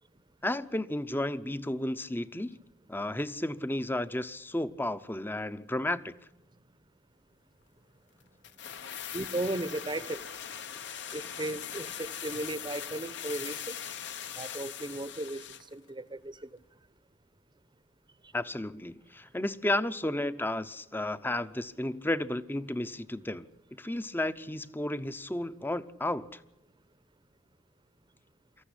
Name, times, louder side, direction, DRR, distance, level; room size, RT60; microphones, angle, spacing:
voice 1, 0.4-2.6 2.9-6.1 18.3-23.4 23.8-26.4, left 1 dB, 10° left, 0.7 m, -33 dB
sound 1, 8.4-15.7 16.0-16.1, left 8 dB, 65° left, 1.1 m, -41 dB
voice 2, 9.1-10.2 11.1-13.8 14.4-15.4 15.7-16.5, right 2 dB, 25° right, 0.9 m, -36 dB
25.0 x 14.5 x 10.0 m
head